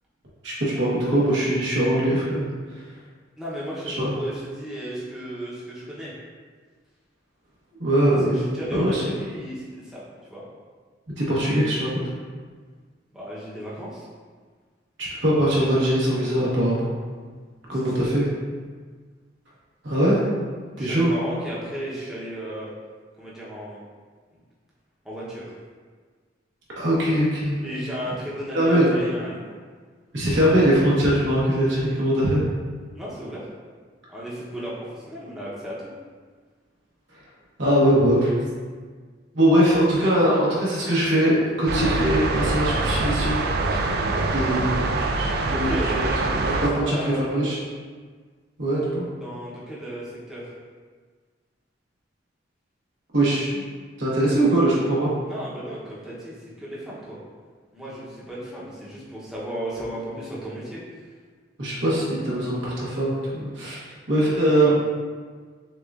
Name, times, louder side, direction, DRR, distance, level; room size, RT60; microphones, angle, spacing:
voice 1, 0.4-2.4 3.9-4.1 7.8-8.4 8.7-9.0 11.2-12.0 15.2-16.9 17.7-18.2 19.8-20.2 20.8-21.1 26.8-27.6 28.5-28.9 30.1-32.4 37.6-38.3 39.3-43.4 43.7-43.9 44.3-45.8 46.4-47.6 48.6-49.0 53.1-53.6 54.0-55.1 61.6-63.8 64.1-64.7, right 1 dB, 85° right, -7 dB, 1.2 m, -21 dB
voice 2, 3.4-6.1 8.3-10.0 10.3-10.4 13.1-14.1 17.7-17.9 18.2-18.3 20.8-22.7 23.2-23.8 25.0-25.5 27.6-29.5 32.9-33.5 34.1-35.8 45.5-47.3 49.2-50.5 55.3-57.2 57.7-60.8 64.6-64.7, equal, 5° right, -8 dB, 0.7 m, -34 dB
sound 1, 41.7-46.7, right 2 dB, 55° right, 0.3 m, -24 dB
6.4 x 2.4 x 2.4 m, 1.5 s
head